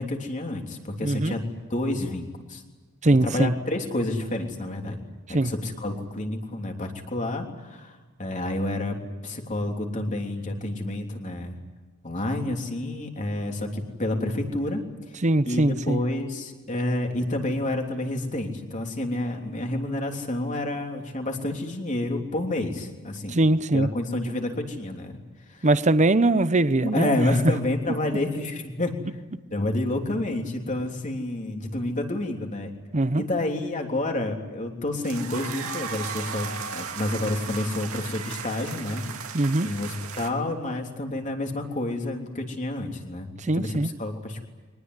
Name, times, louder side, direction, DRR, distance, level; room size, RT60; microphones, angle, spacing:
voice 1, 0.0-1.5 1.7-2.6 3.2-5.0 5.3-9.0 9.2-11.6 12.0-14.8 15.5-23.4 23.7-25.2 25.5-25.7 26.8-29.0 29.5-32.7 33.2-39.0 39.6-43.3 43.5-44.4, left 1 dB, 35° left, 3.4 m, -29 dB
voice 2, 1.0-1.4 3.0-3.5 5.3-5.5 15.2-16.0 23.3-23.9 25.6-27.2 32.9-33.2 39.3-39.7 43.4-43.9, right 2 dB, 35° right, 0.8 m, -21 dB
sound 1, 35.0-40.3, right 6 dB, 70° right, 2.6 m, -36 dB
24.0 x 20.0 x 9.7 m
head